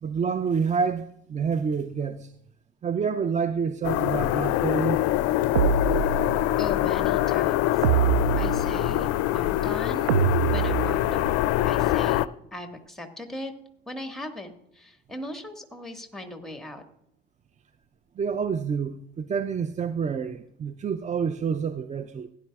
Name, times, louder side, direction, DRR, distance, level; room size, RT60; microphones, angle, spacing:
voice 1, 0.0-2.3 2.8-5.0 18.2-22.3, right 6 dB, 25° right, 0.5 m, -28 dB
sound 1, 3.8-12.3, left 15 dB, 50° left, 0.5 m, -24 dB
sound 2, 5.5-6.6 7.8-9.1 10.1-11.3, right 8 dB, 85° right, 0.5 m, -25 dB
voice 2, 6.6-7.9 8.4-9.1 9.3-10.2 10.5-12.2 12.5-13.5 13.9-16.8, left 1 dB, ahead, 1.6 m, -38 dB
16.5 x 10.5 x 2.4 m
hypercardioid pair, 65°, 32 cm